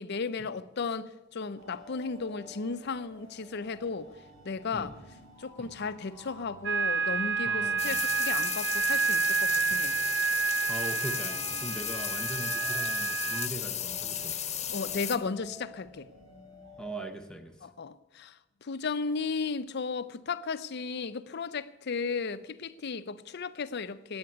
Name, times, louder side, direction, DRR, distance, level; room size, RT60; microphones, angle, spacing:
voice 1, 0.0-4.1 4.4-4.9 5.4-10.0 14.7-16.1 17.6-24.2, left 4 dB, 55° left, 0.5 m, -35 dB
sound 1, 1.6-17.0, left 1 dB, 85° right, 4.6 m, -53 dB
sound 2, 6.6-13.5, right 5 dB, 60° right, 0.5 m, -29 dB
voice 2, 7.4-8.0 9.7-9.9 10.7-14.4 16.8-17.7, right 1 dB, 5° left, 0.8 m, -40 dB
sound 3, 7.8-15.2, left 9 dB, 30° left, 1.1 m, -34 dB
9.7 x 8.6 x 9.3 m
head